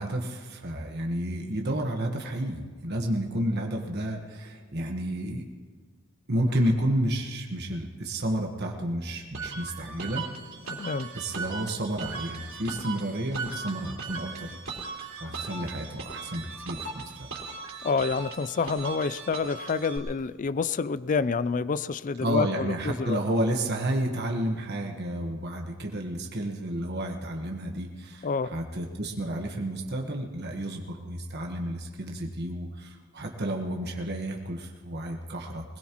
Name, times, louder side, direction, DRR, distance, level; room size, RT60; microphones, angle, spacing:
voice 1, 0.0-5.4 6.3-10.2 11.1-14.6 15.2-17.3 22.2-35.6, right 1 dB, 55° right, 2 dB, 1.3 m, -31 dB
sound 1, 9.3-20.0, right 4 dB, 75° right, 3.6 m, -38 dB
voice 2, 10.7-11.1 17.8-23.2 28.2-28.5, left 4 dB, 40° left, 17 dB, 0.4 m, -28 dB
21.5 x 20.5 x 3.1 m, 1.5 s
head